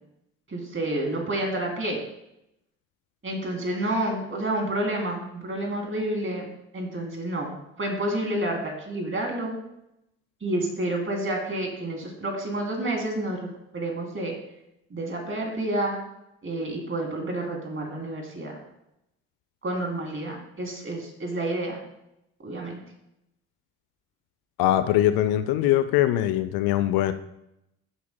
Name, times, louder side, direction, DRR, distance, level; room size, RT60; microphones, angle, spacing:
voice 1, 0.5-2.0 3.2-6.5 6.7-9.5 10.4-13.4 13.7-14.3 14.9-16.0 16.4-18.5 19.6-21.8 22.4-22.8, right 1 dB, 30° right, 1 dB, 3.1 m, -29 dB
voice 2, 24.6-27.1, left 13 dB, 60° left, 12 dB, 0.6 m, -22 dB
13.0 x 8.2 x 2.2 m, 0.83 s
hypercardioid pair, 50°, 41 cm